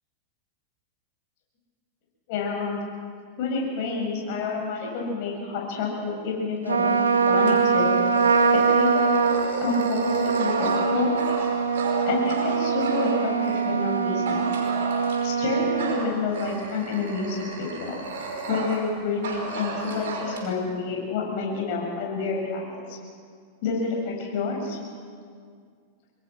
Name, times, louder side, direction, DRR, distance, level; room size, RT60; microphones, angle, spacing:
voice 1, 2.3-2.8 3.4-8.0 8.5-9.2 9.6-11.2 12.0-14.5 15.2-18.0 18.5-22.8 23.6-24.8, left 4 dB, 55° left, 0 dB, 7.5 m, -28 dB
Trumpet, 6.7-16.0, right 5 dB, 90° right, 2.1 m, -23 dB
Dog, 7.4-13.7 14.3-15.4 15.8-18.9 19.2-20.4, right 3 dB, 65° right, 5.4 m, -34 dB
26.5 x 22.0 x 6.4 m, 2.1 s
hypercardioid pair, 100°, 0 cm